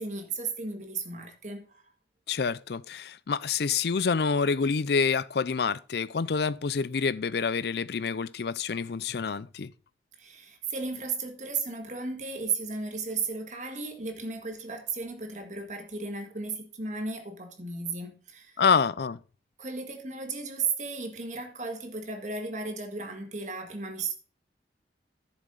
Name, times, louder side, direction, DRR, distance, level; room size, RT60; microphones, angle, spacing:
voice 1, 0.0-1.9 10.2-18.6 19.6-24.1, right 4 dB, 40° right, 1.7 m, -35 dB
voice 2, 2.3-9.7 18.6-19.2, left 5 dB, 65° left, 0.5 m, -27 dB
10.5 x 7.2 x 3.9 m
head